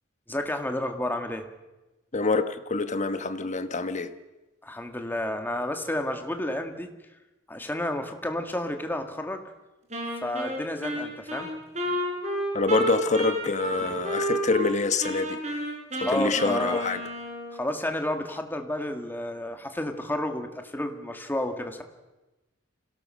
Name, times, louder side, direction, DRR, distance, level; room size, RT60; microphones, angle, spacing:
voice 1, 0.3-1.5 4.6-6.9 7.5-9.4 10.2-11.5 13.8-14.0 16.0-16.9 17.5-21.8, left 1 dB, 10° left, 5 dB, 1.8 m, -31 dB
voice 2, 2.1-4.1 12.5-15.7 16.1-17.0, left 3 dB, 35° left, 10 dB, 1.2 m, -26 dB
Wind instrument woodwind instrument, 9.9-14.7 15.0-17.6, right 1 dB, 35° right, 5.3 m, -31 dB
26.5 x 17.5 x 6.4 m, 1.1 s
head